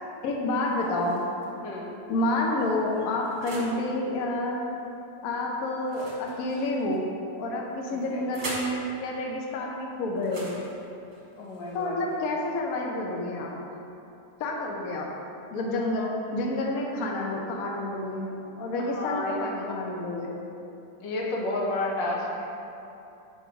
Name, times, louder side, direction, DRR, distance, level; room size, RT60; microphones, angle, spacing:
voice 1, 0.2-1.2 2.1-4.6 5.2-7.1 7.3-10.5 11.7-13.5 14.4-15.1 15.5-20.3, left 2 dB, 60° left, -1 dB, 1.0 m, -29 dB
sound 1, 0.7-1.5 2.2-3.8 5.8-7.0 7.8-8.8 10.2-12.1, right 1 dB, 40° right, 1.2 m, -42 dB
voice 2, 11.4-11.9 18.8-19.4 21.0-22.5, left 2 dB, 85° left, -2 dB, 1.6 m, -31 dB
4.6 x 4.4 x 5.8 m, 2.8 s
omnidirectional pair, 1.9 m